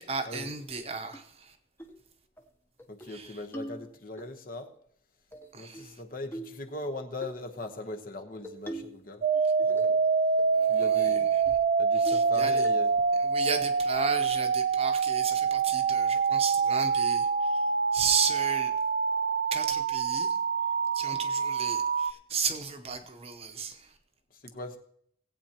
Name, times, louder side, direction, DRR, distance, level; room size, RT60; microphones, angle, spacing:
voice 1, 0.0-1.6 3.0-3.4 5.5-6.0 10.6-11.4 11.9-12.7 13.2-17.6 17.9-18.7 19.5-20.4 20.9-23.9, right 5 dB, 30° right, 0.9 m, -34 dB
sound 1, 1.1-1.2 1.8-2.0 2.4-2.5 2.8-3.2 3.5-4.3 5.3-5.9 6.3-6.6 7.2-7.4 8.4-9.0 9.3-10.0 10.4-10.5 10.8-11.0 11.5-11.6 12.1-12.4 12.6-13.1, right 1 dB, 10° left, 0.8 m, -42 dB
voice 2, 2.9-4.7 5.5-9.2 9.6-10.0 10.7-11.3 11.8-12.9 24.4-24.8, left 2 dB, 50° left, 1.0 m, -40 dB
sound 2, 9.2-22.1, right 5 dB, 50° right, 0.3 m, -26 dB
18.0 x 8.5 x 2.9 m
head